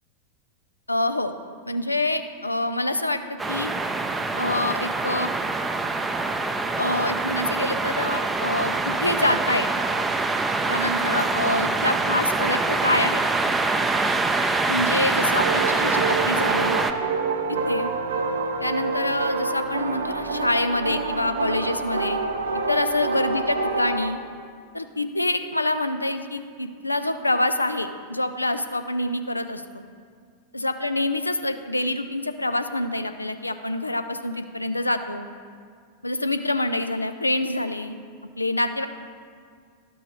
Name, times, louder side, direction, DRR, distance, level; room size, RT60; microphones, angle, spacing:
voice 1, 0.9-1.3 1.7-3.7 4.4-5.3 6.8-9.7 10.7-13.2 14.7-16.8 17.5-17.9 18.6-22.2 22.7-24.2 24.7-29.8 30.5-35.3 36.0-38.0 38.4-38.9, left 1 dB, 85° left, 9 dB, 0.4 m, -26 dB
sound 1, 3.4-16.9, right 3 dB, 10° right, 0.5 m, -25 dB
sound 2, 15.4-24.1, right 4 dB, 65° right, 0.6 m, -27 dB
12.5 x 6.1 x 3.1 m, 2.1 s
figure-of-eight pair, 90°, 0 cm